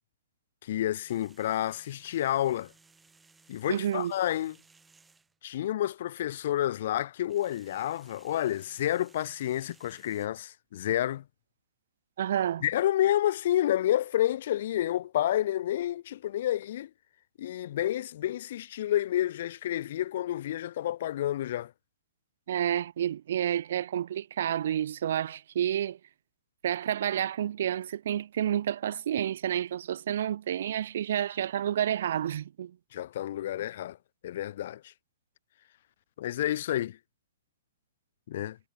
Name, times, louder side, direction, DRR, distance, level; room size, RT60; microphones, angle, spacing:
voice 1, 0.6-2.7 3.5-4.6 5.4-11.2 12.6-16.9 17.4-21.7 32.9-34.0 34.2-34.9 36.2-37.0 38.3-38.6, left 12 dB, 60° left, 0.6 m, -29 dB
sound 1, 1.0-5.4 7.2-10.3, right 4 dB, 10° right, 4.5 m, -61 dB
voice 2, 3.7-4.1 12.2-12.6 22.5-26.0 26.6-32.7, right 10 dB, 65° right, 0.4 m, -29 dB
hypercardioid pair, 135°, 0 cm